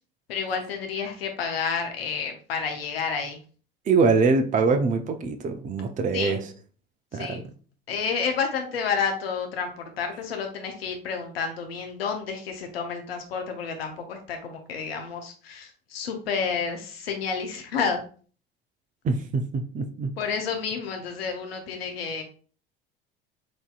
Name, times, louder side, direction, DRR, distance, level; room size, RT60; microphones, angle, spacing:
voice 1, 0.3-3.4 6.1-6.4 7.1-7.4 7.9-18.0 20.2-22.2, left 6 dB, 80° left, 0.7 m, -30 dB
voice 2, 3.9-6.5 7.1-7.4 19.0-20.1, right 4 dB, 25° right, 0.5 m, -24 dB
6.0 x 2.7 x 2.3 m
hypercardioid pair, 70°, 30 cm